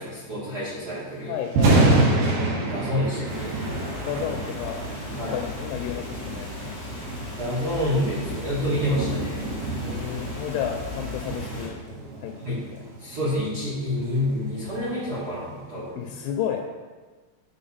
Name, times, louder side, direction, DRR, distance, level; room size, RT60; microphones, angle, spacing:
voice 1, 0.0-1.3 2.7-3.9 5.2-5.4 7.4-9.4 12.4-12.6 13.0-16.1, left 1 dB, 85° right, -11 dB, 0.8 m, -28 dB
voice 2, 1.3-2.1 4.1-4.9 5.3-6.9 9.8-11.8 12.2-12.7 16.0-16.6, left 9 dB, 85° left, 2 dB, 2.5 m, -32 dB
Thunder, 1.4-15.6, right 2 dB, 70° right, 2.7 m, -28 dB
sound 1, 3.2-11.7, left 2 dB, 20° left, 1.0 m, -36 dB
9.3 x 3.4 x 4.1 m, 1.4 s
omnidirectional pair, 4.6 m